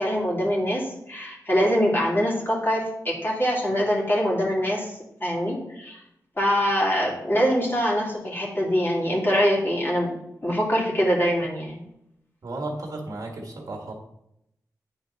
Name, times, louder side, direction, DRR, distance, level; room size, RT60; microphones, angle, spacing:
voice 1, 0.0-6.0 6.4-10.1 10.4-11.8, equal, 30° left, -3 dB, 2.7 m, -24 dB
voice 2, 12.4-13.9, right 2 dB, 60° right, 0 dB, 1.7 m, -34 dB
8.9 x 4.1 x 4.1 m, 0.81 s
cardioid pair, 45°, 7 cm